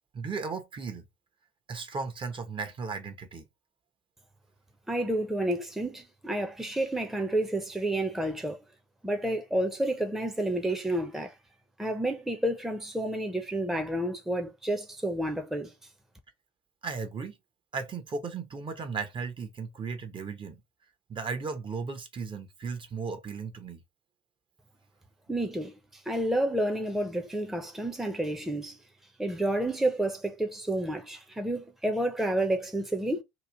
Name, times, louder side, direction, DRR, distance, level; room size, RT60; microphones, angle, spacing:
voice 1, 0.1-1.1 1.7-3.4 16.8-17.4 17.7-20.6 21.1-23.8, right 5 dB, 35° right, 0.8 m, -36 dB
voice 2, 4.9-8.6 9.0-11.4 11.8-15.7 25.3-28.8 29.2-33.2, right 1 dB, ahead, 0.7 m, -30 dB
3.0 x 2.5 x 3.6 m
hypercardioid pair, 65°, 16 cm